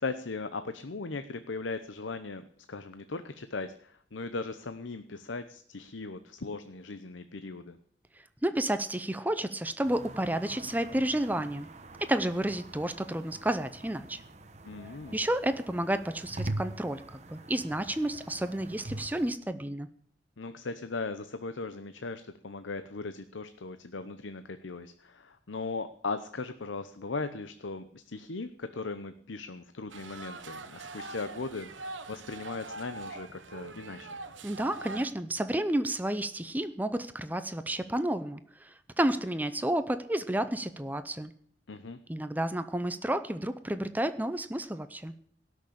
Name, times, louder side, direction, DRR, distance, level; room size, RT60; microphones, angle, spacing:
voice 1, 0.0-7.8 14.7-15.2 20.4-34.1 41.7-42.0, left 3 dB, 85° left, 10 dB, 0.8 m, -38 dB
voice 2, 8.4-11.7 12.0-14.2 15.1-19.9 34.4-41.3 42.1-45.1, right 1 dB, 10° right, 11 dB, 0.6 m, -31 dB
sound 1, 9.8-19.3, right 2 dB, 35° right, 1.0 m, -43 dB
sound 2, 29.9-35.1, right 3 dB, 85° right, 1.2 m, -43 dB
17.5 x 6.5 x 8.6 m, 0.63 s
head